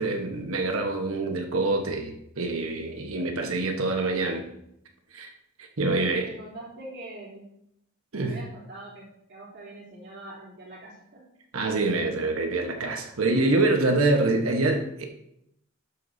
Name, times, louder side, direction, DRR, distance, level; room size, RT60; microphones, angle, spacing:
voice 1, 0.0-4.4 5.1-5.3 5.6-6.3 8.1-8.4 11.5-15.1, right 2 dB, 85° right, 3 dB, 1.2 m, -25 dB
voice 2, 6.0-7.4 8.2-11.3, right 2 dB, 55° right, -8 dB, 3.3 m, -44 dB
12.0 x 8.4 x 2.7 m, 0.78 s
head